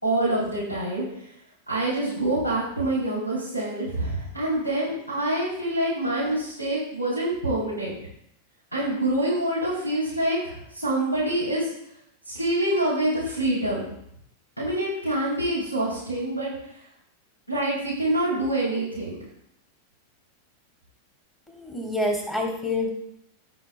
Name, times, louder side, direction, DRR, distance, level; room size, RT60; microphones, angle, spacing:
voice 1, 0.0-1.0 1.7-7.9 8.7-11.7 12.3-13.8 14.6-16.5 17.5-19.2, right 1 dB, 85° left, -6 dB, 3.2 m, -26 dB
voice 2, 21.5-22.9, left 2 dB, 15° left, 2 dB, 2.5 m, -27 dB
17.0 x 6.1 x 2.2 m, 0.75 s
figure-of-eight pair, 90°, 0 cm